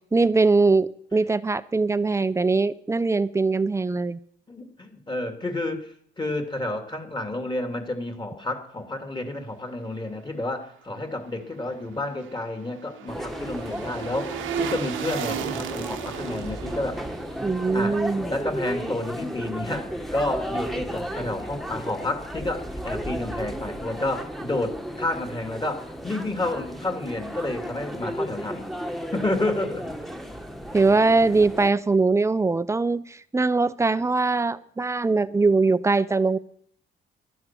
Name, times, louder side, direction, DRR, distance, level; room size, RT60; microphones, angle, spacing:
voice 1, 0.1-4.2 17.4-18.3 30.7-36.4, right 3 dB, 15° right, 0.7 m, -22 dB
voice 2, 4.5-17.1 17.7-18.0 18.3-28.7 29.1-30.0, left 2 dB, 25° left, 2.7 m, -30 dB
sound 1, 11.8-19.0 19.3-19.4, right 9 dB, 85° right, 1.3 m, -35 dB
sound 2, 13.1-31.7, equal, ahead, 1.5 m, -34 dB
12.0 x 10.5 x 7.5 m
cardioid pair, 90°, 20 cm